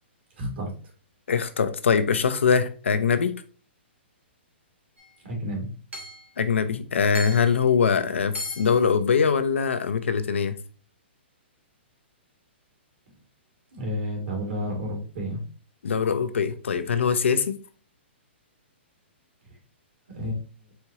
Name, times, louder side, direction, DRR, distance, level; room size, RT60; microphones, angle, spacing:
voice 1, 0.4-0.7 5.2-5.7 13.7-15.4 20.1-20.4, equal, 65° right, 2.4 m, -30 dB
voice 2, 1.3-3.3 6.4-10.5 15.8-17.6, left 6 dB, 80° left, 0.6 m, -22 dB
Hammer / Chink clink, 5.0-5.1 5.9-6.3 7.1-7.6 8.3-8.8, right 1 dB, 90° right, 1.6 m, -39 dB
4.4 x 3.6 x 2.9 m
hypercardioid pair, 135°, 6 cm